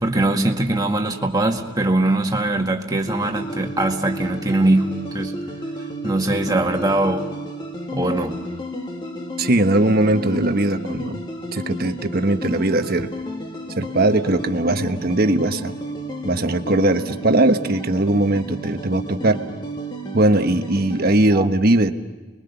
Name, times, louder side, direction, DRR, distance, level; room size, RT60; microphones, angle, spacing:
voice 1, 0.0-5.3 6.0-7.3 7.9-8.4 21.3-21.5, right 2 dB, 20° right, 2 dB, 2.0 m, -21 dB
sound 1, 3.1-21.2, equal, 20° left, 2.2 m, -32 dB
voice 2, 9.4-11.2 11.5-13.1 13.8-15.7 16.2-19.4 20.1-21.9, right 2 dB, 45° right, 7 dB, 1.2 m, -19 dB
30.0 x 22.0 x 6.9 m, 1.3 s
head